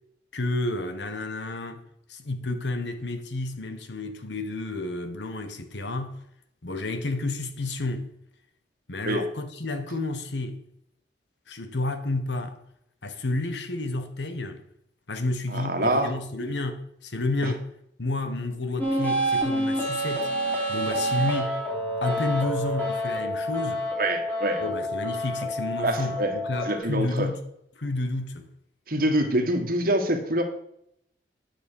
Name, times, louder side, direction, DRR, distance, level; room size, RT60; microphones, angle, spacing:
voice 1, 0.3-1.8 2.1-6.1 6.6-8.1 8.9-10.6 11.5-12.6 13.0-14.6 15.1-17.6 18.0-20.3 20.7-21.5 22.0-23.9 24.6-27.3 27.8-28.5, left 2 dB, 85° left, 1.3 m, -30 dB
voice 2, 15.5-16.1 17.4-17.5 24.0-24.6 25.8-26.3 26.6-27.3 28.9-30.4, right 1 dB, 55° right, 1.7 m, -25 dB
sound 1, 18.8-26.8, equal, 10° left, 3.2 m, -28 dB
10.0 x 6.4 x 6.3 m
head